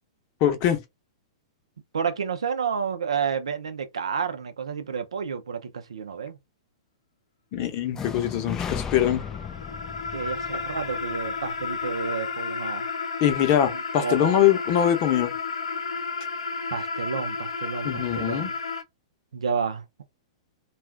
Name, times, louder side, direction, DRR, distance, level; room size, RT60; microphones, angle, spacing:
voice 1, 0.4-0.8 7.5-9.2 13.2-15.3 17.8-18.5, left 10 dB, 45° left, 0.8 m, -23 dB
voice 2, 1.9-6.4 10.1-12.9 13.7-14.3 16.7-18.6 19.3-19.8, right 6 dB, 85° right, 0.6 m, -30 dB
sound 1, 7.9-11.9, left 7 dB, 20° left, 0.4 m, -36 dB
sound 2, 8.8-18.8, left 4 dB, 85° left, 0.7 m, -32 dB
2.4 x 2.4 x 3.3 m
hypercardioid pair, 125°, 3 cm